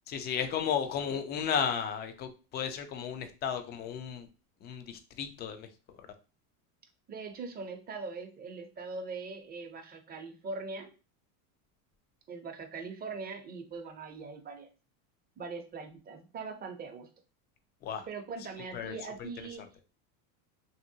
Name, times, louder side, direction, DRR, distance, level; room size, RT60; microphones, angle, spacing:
voice 1, 0.1-4.3 4.6-5.7 17.8-18.1 18.7-19.3, left 7 dB, 25° left, 7 dB, 0.4 m, -34 dB
voice 2, 7.1-10.9 12.3-14.7 15.4-17.1 18.1-19.6, right 4 dB, 20° right, 4 dB, 0.6 m, -41 dB
2.9 x 2.8 x 2.7 m, 0.33 s
supercardioid pair, 115°, 44 cm